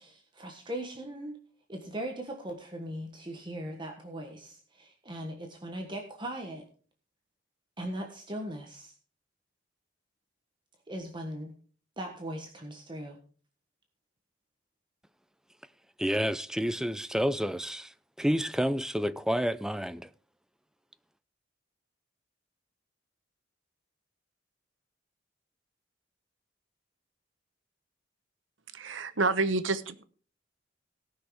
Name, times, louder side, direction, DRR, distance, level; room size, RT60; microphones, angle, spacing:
voice 1, 0.0-1.4 1.7-6.7 7.8-8.9 10.9-11.5 12.0-13.2, right 1 dB, 25° right, 1.4 m, -39 dB
voice 2, 16.0-17.9 18.2-20.1, equal, 5° right, 0.4 m, -29 dB
voice 3, 28.7-30.0, right 3 dB, 85° right, 1.0 m, -28 dB
17.5 x 6.2 x 4.8 m
head